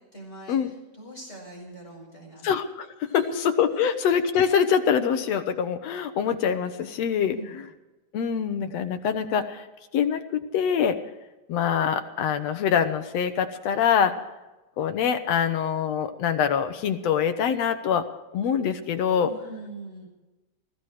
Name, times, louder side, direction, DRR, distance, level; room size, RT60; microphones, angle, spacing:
voice 1, 0.1-2.5 3.1-3.4 7.2-7.6 19.2-20.1, right 1 dB, 20° left, -2 dB, 5.6 m, -42 dB
voice 2, 2.4-3.3 3.6-7.4 8.1-9.7 9.9-11.0 11.5-14.1 14.8-18.0 18.3-19.3, left 8 dB, 65° left, 8 dB, 1.9 m, -24 dB
19.0 x 15.5 x 4.9 m, 1.1 s
omnidirectional pair, 3.4 m